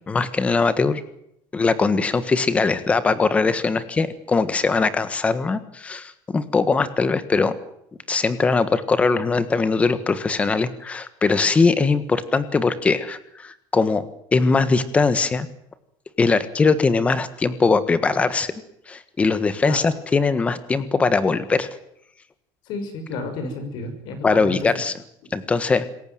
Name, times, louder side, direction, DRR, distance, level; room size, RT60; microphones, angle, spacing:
voice 1, 0.1-1.0 1.5-7.5 8.1-14.1 14.3-15.5 16.2-18.5 18.9-21.7 24.2-24.9 25.3-25.8, left 4 dB, 15° left, 13 dB, 1.5 m, -21 dB
voice 2, 22.7-24.8, left 2 dB, 50° left, 9 dB, 6.2 m, -31 dB
27.0 x 15.0 x 9.3 m, 0.75 s
cardioid pair, 175°, 9 cm